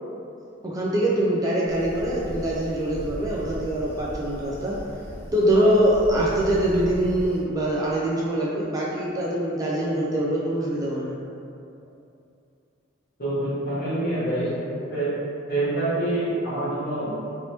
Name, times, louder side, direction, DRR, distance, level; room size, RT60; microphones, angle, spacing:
voice 1, 0.6-4.8 5.3-11.1, right 1 dB, 20° right, -6 dB, 0.3 m, -23 dB
sound 1, 1.7-7.4, equal, 5° left, 0.9 m, -37 dB
voice 2, 13.2-15.1 15.5-17.1, right 1 dB, 50° left, -9 dB, 1.1 m, -26 dB
3.3 x 2.8 x 2.8 m, 2.6 s
head